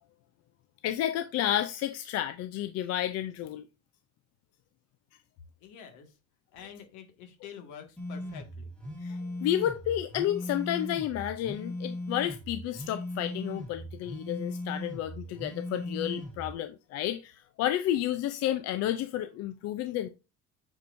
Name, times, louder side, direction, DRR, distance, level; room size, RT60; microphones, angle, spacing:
voice 1, 0.8-3.6 9.0-20.1, left 12 dB, 55° left, 0.5 m, -31 dB
voice 2, 5.6-6.2 6.5-8.7, left 8 dB, 75° left, 1.8 m, -47 dB
sound 1, 8.0-16.5, left 1 dB, 5° left, 1.4 m, -38 dB
8.6 x 4.6 x 2.6 m
cardioid pair, 160°, 30 cm